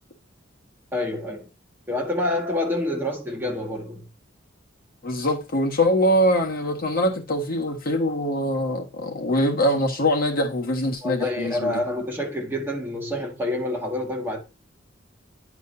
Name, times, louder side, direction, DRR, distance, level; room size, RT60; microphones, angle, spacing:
voice 1, 0.9-1.5 1.9-4.0 11.0-14.4, left 1 dB, 10° right, 1.8 m, -27 dB
voice 2, 5.0-11.8, equal, 50° left, 1.5 m, -23 dB
9.5 x 4.9 x 2.7 m
head